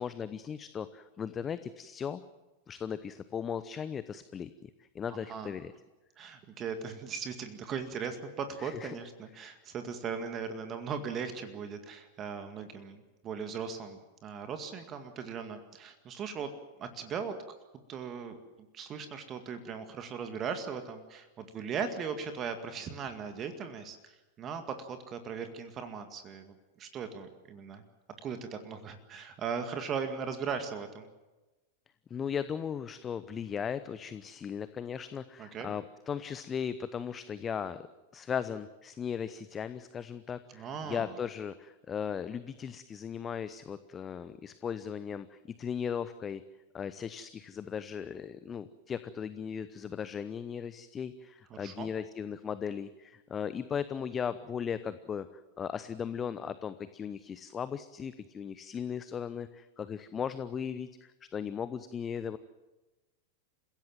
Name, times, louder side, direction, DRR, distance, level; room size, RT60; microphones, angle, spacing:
voice 1, 0.0-2.2 2.7-4.7 4.9-5.7 8.6-8.9 32.1-37.9 38.1-46.4 46.7-55.3 55.6-62.4, left 7 dB, 20° left, 14 dB, 0.8 m, -37 dB
voice 2, 5.1-5.5 6.2-16.5 16.8-17.4 17.9-18.4 18.7-27.8 28.2-31.1 35.4-35.7 40.5-41.2 51.5-51.9, right 6 dB, 30° right, 8 dB, 2.1 m, -38 dB
29.0 x 16.5 x 7.6 m, 1.1 s
figure-of-eight pair, 90°, 0 cm